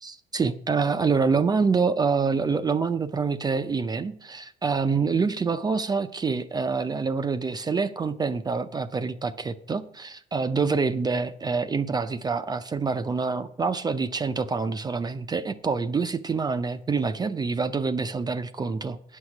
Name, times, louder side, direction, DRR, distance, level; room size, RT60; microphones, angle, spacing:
voice 1, 0.0-19.2, right 4 dB, 25° right, 10 dB, 0.5 m, -26 dB
9.4 x 6.4 x 5.9 m, 0.71 s
cardioid pair, 110°, 17 cm